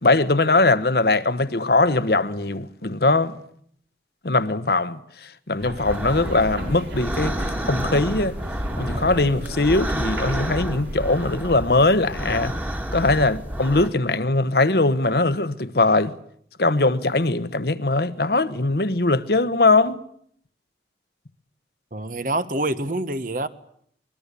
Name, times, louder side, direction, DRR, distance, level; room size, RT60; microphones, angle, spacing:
voice 1, 0.0-3.3 4.2-5.0 5.5-8.3 8.8-12.5 12.9-16.1 16.6-20.0, left 2 dB, 60° left, 1.2 m, -21 dB
sound 1, 5.6-11.5, equal, 90° right, 6.6 m, -37 dB
sound 2, 5.8-13.9, equal, 10° right, 2.0 m, -30 dB
voice 2, 21.9-23.5, right 2 dB, 50° right, 1.4 m, -26 dB
24.5 x 22.0 x 8.4 m
head